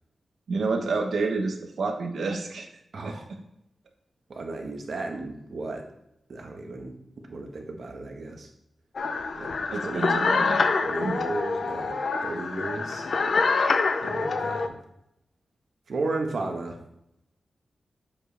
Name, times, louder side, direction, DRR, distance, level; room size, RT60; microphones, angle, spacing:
voice 1, 0.5-2.7 3.0-3.1 9.7-10.6 11.0-11.1, right 3 dB, 80° right, 3 dB, 1.0 m, -28 dB
voice 2, 2.9-3.3 4.3-5.8 6.3-7.0 7.3-8.5 9.3-9.5 9.8-10.2 10.8-13.1 14.0-14.8 15.9-16.8, right 2 dB, 60° right, 3 dB, 1.1 m, -34 dB
sound 1, 9.0-14.7, left 4 dB, 60° left, 0.5 m, -26 dB
7.6 x 4.9 x 3.3 m, 0.79 s
wide cardioid pair, 155°, 0 cm